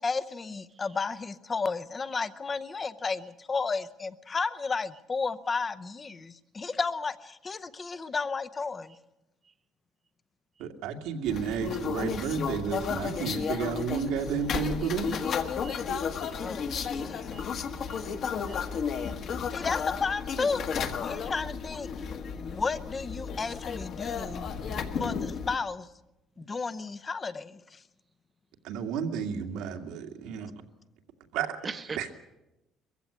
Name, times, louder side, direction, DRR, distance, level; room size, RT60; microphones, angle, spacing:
voice 1, 0.0-8.9 16.3-17.3 19.5-22.1 22.4-24.5 25.0-25.9 26.4-27.8, left 4 dB, 20° left, 15 dB, 0.7 m, -33 dB
voice 2, 10.6-15.2 28.6-30.5 31.3-31.5 32.0-32.1, right 6 dB, 90° right, 4 dB, 2.3 m, -31 dB
sound 1, 11.3-25.6, left 6 dB, 45° left, 1.4 m, -33 dB
voice 3, 31.6-32.2, right 5 dB, 20° right, 11 dB, 0.9 m, -41 dB
22.0 x 15.5 x 9.9 m, 0.97 s
cardioid pair, 180°, 0 cm